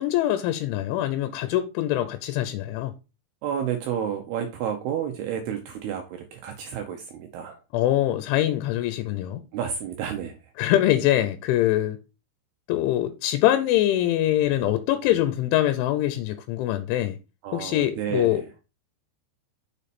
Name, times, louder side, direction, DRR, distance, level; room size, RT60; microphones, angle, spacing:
voice 1, 0.0-2.9 7.7-9.4 10.6-12.0 12.7-17.2 17.5-18.4, left 13 dB, 85° left, 3.0 m, -23 dB
voice 2, 3.4-7.6 9.5-10.3 17.4-18.5, right 8 dB, 80° right, 2.3 m, -31 dB
6.9 x 5.1 x 4.2 m
omnidirectional pair, 5.5 m